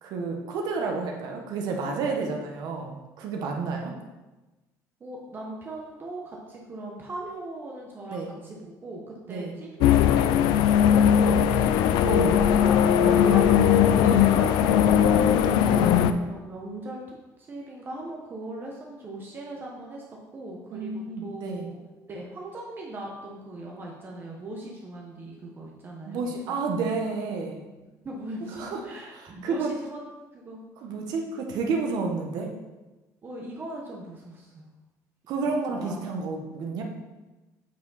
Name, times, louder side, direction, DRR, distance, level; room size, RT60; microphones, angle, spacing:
voice 1, 0.0-3.9 8.1-8.3 9.3-9.5 12.0-12.4 13.0-13.4 14.0-14.8 15.6-15.9 20.7-21.7 26.1-27.6 28.5-28.8 29.1-29.7 30.8-32.5 35.3-36.8, right 4 dB, 65° right, 2 dB, 1.2 m, -30 dB
voice 2, 5.0-11.7 12.3-12.8 13.2-13.7 14.0-15.6 16.2-21.8 22.1-26.3 28.0-30.9 33.2-34.7 35.4-35.5 35.8-36.0, right 2 dB, 30° right, -2 dB, 1.0 m, -39 dB
sound 1, 9.8-16.1, left 9 dB, 85° left, 0.4 m, -19 dB
8.2 x 4.8 x 4.1 m, 1.1 s
cardioid pair, 145°, 7 cm